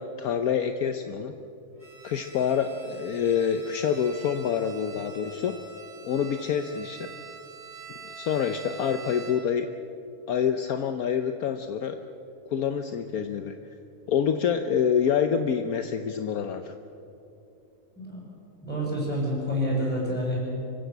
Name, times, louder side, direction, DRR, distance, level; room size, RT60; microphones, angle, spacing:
voice 1, 0.0-1.3 2.0-5.6 6.0-7.1 8.1-9.7 10.3-12.0 12.5-13.6 14.1-16.7, left 7 dB, 70° left, 8 dB, 1.2 m, -27 dB
Bowed string instrument, 1.8-9.6, right 5 dB, 75° right, 5.1 m, -45 dB
voice 2, 18.6-20.5, equal, 5° left, -4 dB, 7.5 m, -28 dB
25.5 x 16.0 x 8.0 m, 2.7 s
omnidirectional pair, 1.7 m